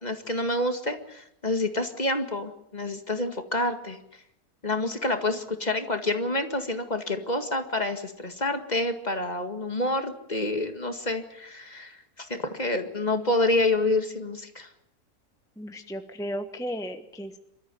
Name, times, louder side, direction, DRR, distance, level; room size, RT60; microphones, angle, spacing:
voice 1, 0.0-4.0 4.6-11.9 12.2-14.7, left 2 dB, 25° left, 7 dB, 1.9 m, -28 dB
voice 2, 15.6-17.4, equal, ahead, 7 dB, 1.1 m, -35 dB
26.5 x 14.0 x 9.3 m, 0.79 s
omnidirectional pair, 1.6 m